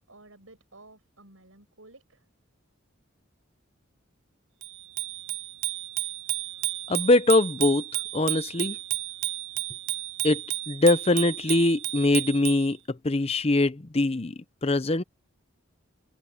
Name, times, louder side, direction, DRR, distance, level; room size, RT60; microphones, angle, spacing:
voice 1, 0.0-2.2, right 2 dB, 80° right, 7.5 m, -53 dB
Bicycle bell, 4.6-12.7, right 18 dB, 65° right, 0.5 m, -32 dB
voice 2, 6.9-7.8 8.1-8.8 10.2-10.4 10.7-12.8 13.0-14.3 14.6-15.0, left 2 dB, 30° left, 0.7 m, -22 dB
head